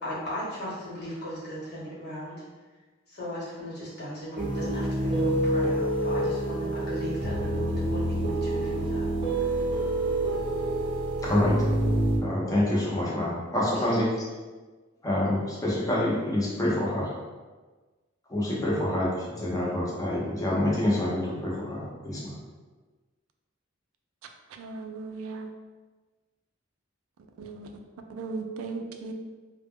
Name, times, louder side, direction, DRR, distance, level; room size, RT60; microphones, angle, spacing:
voice 1, 0.0-2.4 3.1-9.1 9.3-9.6 13.7-14.0, equal, 55° left, -8 dB, 1.1 m, -37 dB
sound 1, 4.4-12.2, right 1 dB, 25° right, 0.5 m, -27 dB
voice 2, 11.2-11.6 12.2-14.1 15.0-17.1 18.3-22.3, left 1 dB, 15° left, -5 dB, 0.6 m, -27 dB
voice 3, 24.5-25.5 27.4-27.8 28.1-29.1, right 3 dB, 85° right, 4 dB, 0.3 m, -37 dB
2.1 x 2.1 x 3.4 m, 1.3 s
head